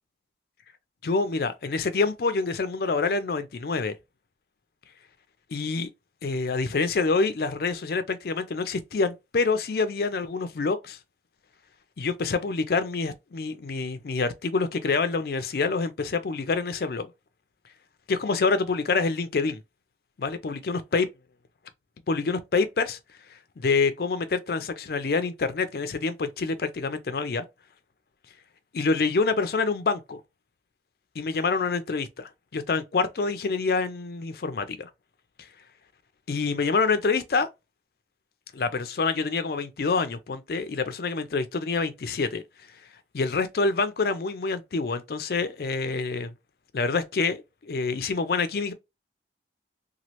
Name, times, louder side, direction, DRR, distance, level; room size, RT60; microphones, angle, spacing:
voice 1, 1.0-3.9 5.5-5.9 6.2-11.0 12.0-17.1 18.1-19.6 20.2-21.1 22.1-23.0 23.3-27.4 28.7-30.2 31.2-34.9 36.3-37.5 38.5-42.4 43.1-46.3 46.7-48.7, left 4 dB, 60° left, 0.4 m, -26 dB
3.0 x 2.4 x 2.8 m
head